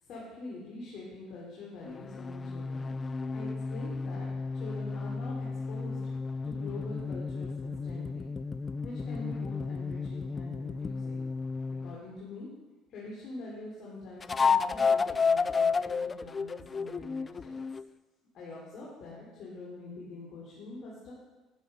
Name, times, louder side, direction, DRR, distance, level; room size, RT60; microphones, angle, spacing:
voice 1, 0.1-2.9 3.3-8.3 8.8-11.2 11.8-12.5 12.9-17.6 18.3-21.1, left 2 dB, 55° left, -6 dB, 3.2 m, -45 dB
sound 1, 1.8-12.0 14.2-17.9, left 5 dB, 25° left, 0.3 m, -32 dB
12.0 x 6.9 x 5.4 m, 1.2 s
cardioid pair, 110°, 0 cm